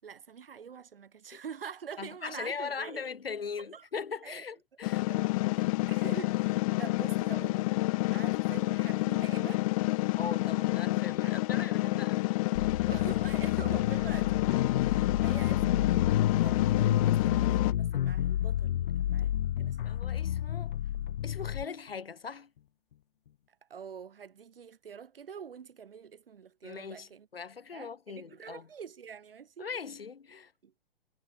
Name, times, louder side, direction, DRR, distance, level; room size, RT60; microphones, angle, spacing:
voice 1, 0.0-3.1 3.6-3.8 4.2-4.4 5.1-9.7 11.2-11.7 12.9-20.1 23.7-27.3 27.7-29.7 30.6-30.7, right 7 dB, 70° right, 5.4 m, -46 dB
voice 2, 2.0-5.1 10.2-12.7 15.3-15.4 19.8-20.8 21.2-22.5 26.6-28.7 29.6-30.5, left 6 dB, 80° left, 2.5 m, -40 dB
sound 1, 4.8-17.7, left 21 dB, 35° left, 0.6 m, -29 dB
sound 2, 12.5-21.6, left 11 dB, 60° left, 1.4 m, -30 dB
figure-of-eight pair, 115°, 29 cm